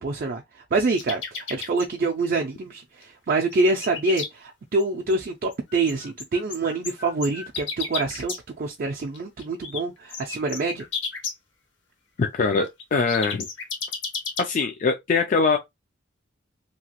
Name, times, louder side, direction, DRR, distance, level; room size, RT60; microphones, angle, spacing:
voice 1, 0.0-10.8, right 3 dB, 50° right, 0.4 m, -26 dB
sound 1, 1.0-1.9 3.0-3.1 3.3-4.3 4.8-4.9 5.1-5.2 5.5-8.4 9.1-9.8 10.1-11.3 12.6-14.4, left 5 dB, 70° left, 0.9 m, -32 dB
voice 2, 12.2-13.5 14.4-15.6, left 4 dB, 40° left, 0.3 m, -22 dB
2.9 x 2.3 x 2.8 m
head